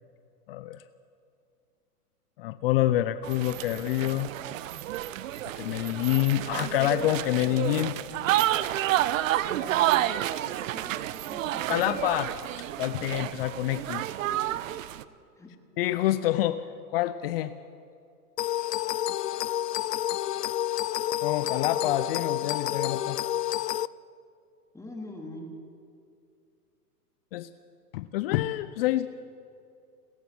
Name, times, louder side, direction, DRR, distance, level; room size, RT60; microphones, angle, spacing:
voice 1, 0.5-0.8 2.4-4.3 5.6-8.0 11.7-12.3 12.8-14.1 15.8-16.6 16.9-17.5 21.2-23.2 27.3-27.5 27.9-29.1, left 14 dB, 40° left, 14 dB, 0.6 m, -27 dB
sound 1, 3.2-15.0, right 13 dB, 55° right, 0.9 m, -30 dB
voice 2, 9.6-10.1 10.7-11.9 14.3-14.9 15.4-15.5 24.7-25.5, left 1 dB, 5° left, 0 dB, 3.5 m, -44 dB
sound 2, 18.4-23.9, left 13 dB, 80° left, 0.7 m, -29 dB
29.5 x 14.5 x 6.2 m, 2.4 s
hypercardioid pair, 130°, 47 cm